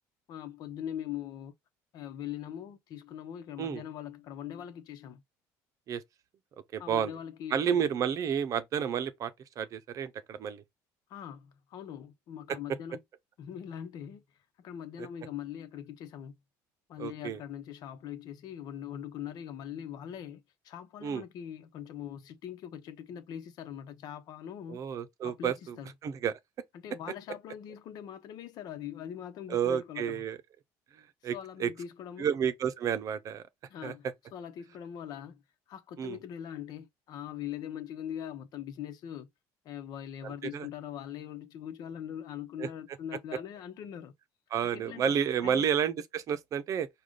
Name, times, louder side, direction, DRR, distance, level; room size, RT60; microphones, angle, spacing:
voice 1, 0.3-1.5 1.9-5.2 6.8-7.9 11.1-13.0 13.4-14.2 14.6-16.4 16.9-24.9 25.2-25.9 26.7-30.2 31.3-32.3 33.7-34.1 34.3-35.4 35.7-39.3 39.6-44.1 44.7-45.1 45.4-45.7, left 10 dB, 60° left, 0.9 m, -42 dB
voice 2, 6.7-7.1 7.5-10.6 12.5-12.6 15.0-15.1 17.0-17.4 21.0-21.2 24.7-25.8 26.0-26.4 29.5-30.4 31.2-31.7 32.2-33.4 33.8-34.1 36.0-36.2 40.2-40.7 42.6-42.7 44.5-46.9, right 8 dB, 50° right, 0.7 m, -31 dB
4.9 x 2.4 x 3.8 m
cardioid pair, 115°, 8 cm